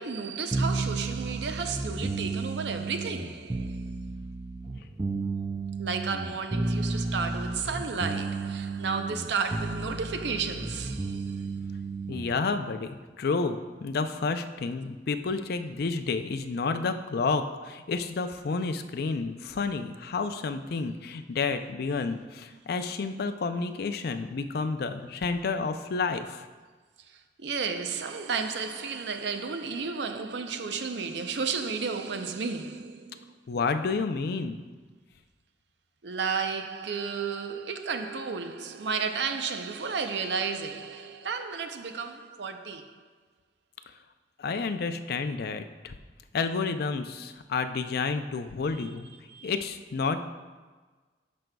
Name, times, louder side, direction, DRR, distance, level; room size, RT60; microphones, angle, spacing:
voice 1, 0.0-3.9 5.8-11.5 27.0-33.3 36.0-43.1 48.8-48.9 49.3-49.5, right 5 dB, 70° right, 0.6 m, -33 dB
sound 1, 0.5-12.4, right 3 dB, 20° right, 0.4 m, -33 dB
voice 2, 12.1-12.9 13.2-26.5 33.5-34.6 44.4-46.0 46.3-49.1 49.4-50.3, left 4 dB, 60° left, 0.4 m, -30 dB
13.5 x 5.2 x 2.3 m
head